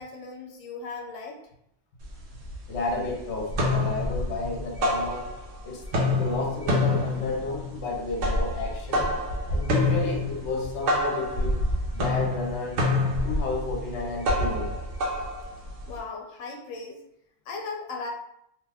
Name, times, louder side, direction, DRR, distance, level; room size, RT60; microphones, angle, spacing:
voice 1, 0.0-1.4 15.9-17.0 17.5-18.1, left 4 dB, 90° left, 0 dB, 1.0 m, -37 dB
sound 1, 2.0-2.1 2.5-3.1 3.4-5.6 5.8-16.0, left 1 dB, 75° right, 1.1 m, -27 dB
voice 2, 2.7-5.2 5.6-5.8 6.2-9.1 9.5-11.6 11.9-12.8 13.2-14.7, left 3 dB, 65° left, 0 dB, 1.0 m, -32 dB
2.7 x 2.2 x 3.4 m, 0.76 s
omnidirectional pair, 1.3 m